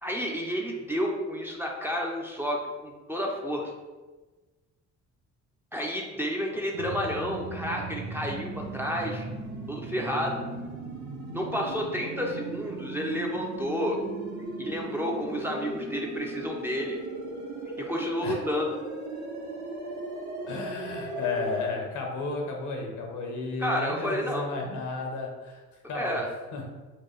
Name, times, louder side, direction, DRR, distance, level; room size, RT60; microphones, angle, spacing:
voice 1, 0.0-3.7 5.7-9.3 9.7-10.4 11.3-14.0 14.6-17.0 17.8-18.8 23.6-24.5 25.9-26.3, equal, 5° right, -1 dB, 0.5 m, -30 dB
sound 1, 6.7-21.6, right 2 dB, 80° right, 0.8 m, -37 dB
voice 2, 20.5-25.6 25.9-26.2 26.5-26.7, left 3 dB, 75° left, 1 dB, 0.9 m, -33 dB
4.4 x 2.3 x 3.1 m, 1.2 s
cardioid pair, 90°, 30 cm